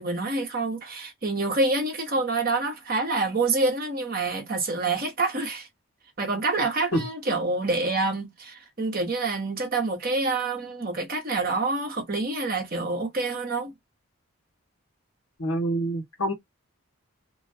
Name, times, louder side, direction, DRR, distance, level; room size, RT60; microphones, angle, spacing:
voice 1, 0.0-5.7 6.2-13.7, right 3 dB, 40° right, 0.9 m, -27 dB
voice 2, 15.4-16.3, right 1 dB, 65° left, 1.0 m, -26 dB
3.1 x 2.2 x 2.6 m
head